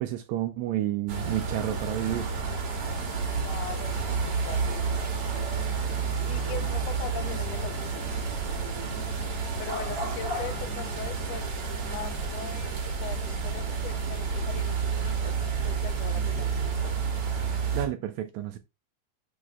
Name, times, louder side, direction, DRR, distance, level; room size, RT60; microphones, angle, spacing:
voice 1, 0.0-2.3 17.7-18.6, right 13 dB, 80° right, 1.7 m, -30 dB
sound 1, 1.1-17.9, right 5 dB, 55° right, 2.6 m, -30 dB
voice 2, 3.4-5.5 6.3-8.2 9.6-11.5 11.9-15.4 15.6-17.0, left 10 dB, 75° left, 1.6 m, -41 dB
11.0 x 5.5 x 2.2 m
omnidirectional pair, 3.6 m